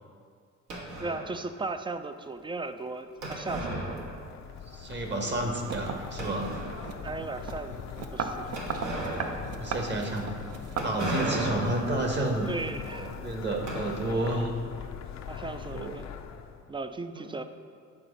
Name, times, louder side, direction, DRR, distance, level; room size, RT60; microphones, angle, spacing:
sound 1, 0.7-1.5 3.2-4.6 4.8-4.9 5.5-5.6 6.2-7.0 8.5-14.4, right 1 dB, 75° right, 1.6 m, -36 dB
voice 1, 1.0-4.0 7.0-8.5 12.5-13.1 15.3-16.1 16.7-17.4, right 3 dB, 15° right, 10 dB, 0.3 m, -36 dB
sound 2, 3.2-16.7, left 8 dB, 65° left, 0.5 m, -42 dB
voice 2, 4.7-6.5 9.6-10.2 10.8-12.5 12.9-14.5 15.7-15.9 17.1-17.3, right 2 dB, 35° right, 2 dB, 1.2 m, -30 dB
sound 3, 5.6-11.4, right 5 dB, 55° right, 0.6 m, -37 dB
8.7 x 3.9 x 5.2 m, 2.1 s
cardioid pair, 90°, 30 cm